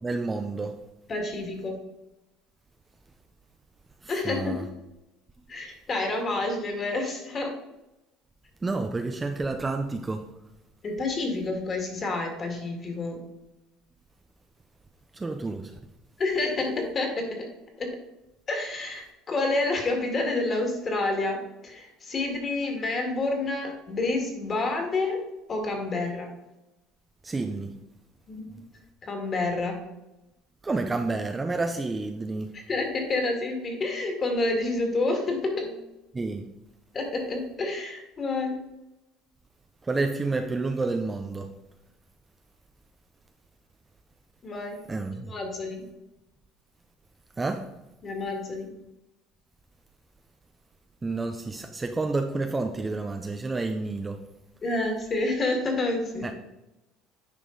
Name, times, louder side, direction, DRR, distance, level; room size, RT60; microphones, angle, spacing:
voice 1, 0.0-0.8 4.0-4.6 8.6-10.3 15.1-15.7 27.2-27.8 30.6-32.5 36.1-36.5 39.8-41.5 44.9-45.3 47.4-47.7 51.0-54.2 56.2-56.3, right 3 dB, 15° right, 0.5 m, -29 dB
voice 2, 1.1-1.7 4.1-4.7 5.5-7.5 10.8-13.2 16.2-17.5 17.8-17.9 18.5-25.2 25.5-26.3 28.3-28.6 29.0-29.8 32.5-35.8 36.9-38.6 44.4-44.8 45.3-45.8 48.0-48.7 54.6-56.3, left 2 dB, 30° left, 2.0 m, -29 dB
9.9 x 5.1 x 3.9 m
cardioid pair, 135°, 0 cm